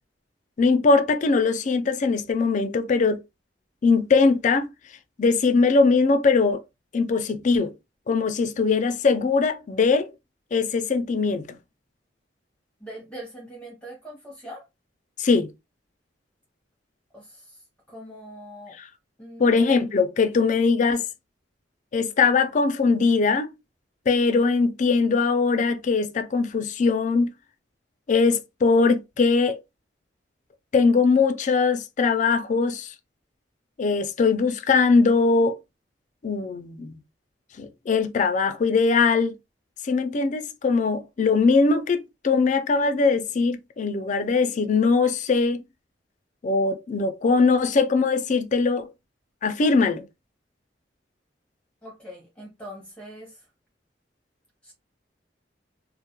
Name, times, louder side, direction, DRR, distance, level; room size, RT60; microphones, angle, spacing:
voice 1, 0.6-3.2 3.8-4.7 5.2-6.6 6.9-7.7 8.1-10.1 10.5-11.5 15.2-15.5 19.4-21.0 21.9-23.5 24.1-27.3 28.1-29.6 30.7-32.9 33.8-35.6 36.2-37.0 37.6-39.3 39.8-45.6 46.4-48.9 49.4-50.0, left 4 dB, 45° left, 0.4 m, -21 dB
voice 2, 12.8-14.6 17.1-18.8 19.2-19.6 51.8-53.5 54.6-54.7, equal, 5° left, 0.7 m, -42 dB
2.2 x 2.1 x 2.8 m
head